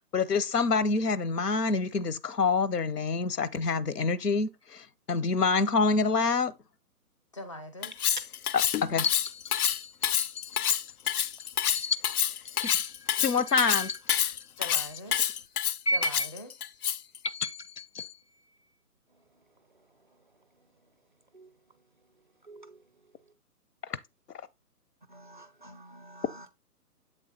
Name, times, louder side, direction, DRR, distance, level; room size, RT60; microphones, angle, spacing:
voice 1, 0.1-6.5 8.5-10.6 11.7-12.0 12.6-12.9 13.2-14.0 15.9-16.1 17.2-18.1, left 4 dB, 85° left, 0.9 m, -27 dB
voice 2, 7.3-8.1 14.6-15.4 15.9-16.8, left 1 dB, 20° left, 0.5 m, -43 dB
Cutlery silverware, 7.8-17.2, left 10 dB, 70° left, 0.5 m, -28 dB
voice 3, 22.5-22.8 25.1-26.4, right 1 dB, 35° right, 0.4 m, -49 dB
7.7 x 3.5 x 4.0 m
hypercardioid pair, 150°, 46 cm